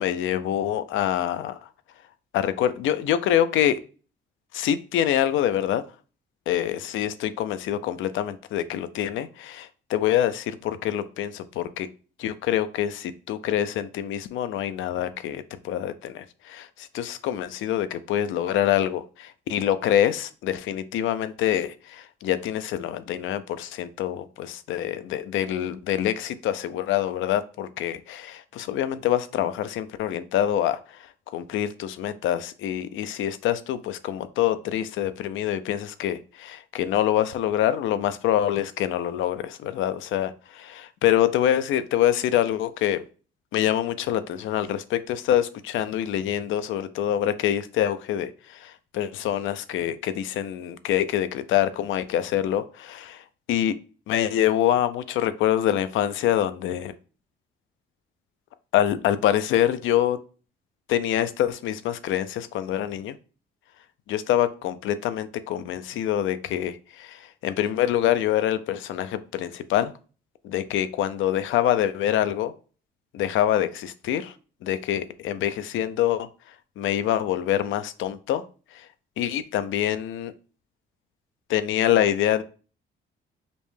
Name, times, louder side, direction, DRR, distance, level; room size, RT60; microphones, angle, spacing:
voice 1, 0.0-1.6 2.3-3.8 4.5-5.8 6.5-11.9 12.2-31.1 31.3-43.0 43.5-53.7 54.1-56.9 58.7-60.2 60.9-63.1 64.1-69.9 70.4-72.5 73.1-74.3 74.6-76.3 76.8-78.4 78.7-78.9 79.2-80.3 81.5-82.4, left 11 dB, 80° left, 12 dB, 0.4 m, -25 dB
5.1 x 2.1 x 3.2 m, 0.37 s
cardioid pair, 90°, 20 cm